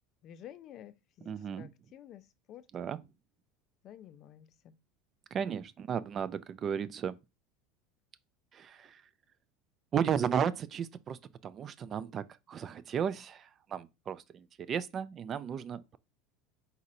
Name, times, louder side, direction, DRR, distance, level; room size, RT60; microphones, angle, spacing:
voice 1, 0.2-2.7 3.8-4.8, left 10 dB, 50° left, 0.4 m, -51 dB
voice 2, 1.3-1.7 2.7-3.0 5.3-7.2 8.5-9.0 9.9-16.0, right 8 dB, 35° right, 0.3 m, -34 dB
4.0 x 4.0 x 2.5 m
supercardioid pair, 110°, 0 cm